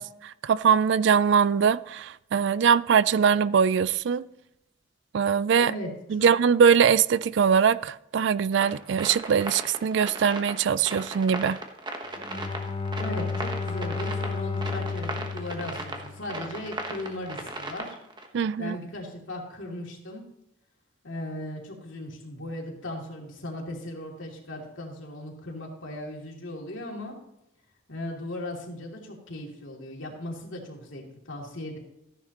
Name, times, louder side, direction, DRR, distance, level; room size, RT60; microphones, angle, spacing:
voice 1, 0.0-4.2 5.1-5.7 6.1-11.6 18.3-18.8, right 7 dB, 60° right, 0.3 m, -22 dB
voice 2, 5.6-6.3 12.9-18.0 18.6-20.2 21.0-27.1 27.9-31.8, left 1 dB, 70° left, 2.7 m, -37 dB
sound 1, 8.5-18.3, right 2 dB, 20° right, 1.1 m, -37 dB
Bowed string instrument, 12.2-16.7, left 4 dB, 25° left, 0.7 m, -32 dB
14.5 x 10.5 x 3.0 m
head